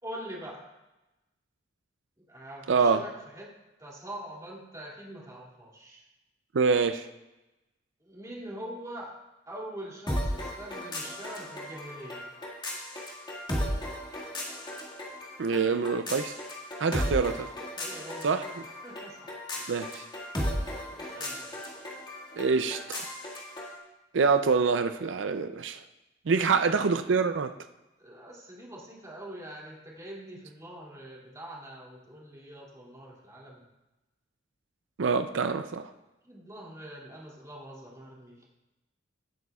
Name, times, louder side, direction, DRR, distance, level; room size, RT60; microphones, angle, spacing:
voice 1, 0.0-0.7 2.3-6.0 8.0-9.2 9.5-12.3 17.0-17.5 17.8-18.5 18.8-19.7 20.9-21.6 26.4-27.1 28.0-33.6 36.2-38.5, right 1 dB, 20° right, -4 dB, 2.6 m, -44 dB
voice 2, 2.7-3.0 6.5-7.0 15.4-16.4 16.8-17.3 18.2-18.4 19.7-20.0 22.4-23.1 24.1-25.8 26.3-27.5 35.0-35.9, right 5 dB, 80° right, 9 dB, 0.5 m, -25 dB
sound 1, 10.1-23.8, equal, 25° left, 1.9 m, -36 dB
16.5 x 9.1 x 2.4 m, 0.99 s
head